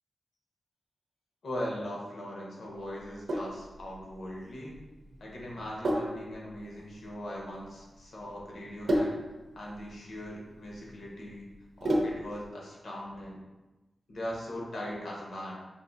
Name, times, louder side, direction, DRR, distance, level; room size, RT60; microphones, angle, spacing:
voice 1, 1.4-4.8 5.2-9.2 9.5-11.5 11.8-13.4 14.1-15.5, left 1 dB, 70° left, -3 dB, 1.0 m, -40 dB
Sink (filling or washing), 3.0-12.4, equal, 80° right, 0.6 m, -34 dB
5.2 x 2.6 x 2.6 m, 1.1 s
wide cardioid pair, 165°, 0 cm